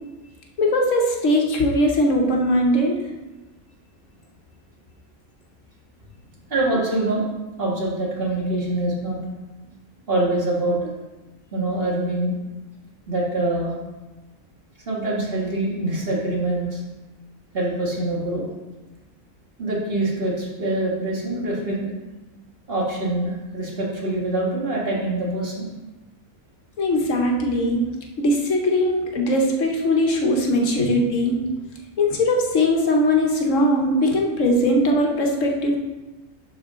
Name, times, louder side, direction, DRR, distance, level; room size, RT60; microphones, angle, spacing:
voice 1, 0.6-3.0 26.8-27.8 28.2-31.4 32.0-35.8, left 1 dB, 70° left, 1 dB, 1.3 m, -20 dB
voice 2, 6.5-7.2 7.6-9.2 10.1-10.8 11.5-12.3 13.1-13.7 14.9-16.8 17.5-18.5 19.6-21.9 22.7-25.7, right 2 dB, 45° right, -4 dB, 1.9 m, -24 dB
11.0 x 4.1 x 3.7 m, 1.1 s
omnidirectional pair, 1.4 m